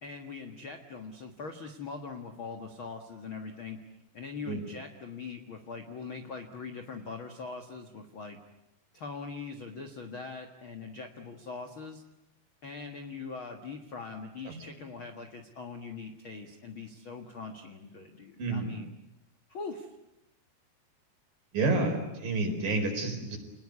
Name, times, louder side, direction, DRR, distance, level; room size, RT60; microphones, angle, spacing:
voice 1, 0.0-3.8 4.1-8.4 8.9-12.0 12.6-18.9 19.5-19.9, left 4 dB, 60° left, 6 dB, 1.3 m, -42 dB
voice 2, 14.5-14.9 18.4-18.8 21.5-23.4, right 3 dB, 55° right, 4 dB, 6.0 m, -30 dB
29.5 x 20.0 x 9.6 m, 0.93 s
omnidirectional pair, 4.9 m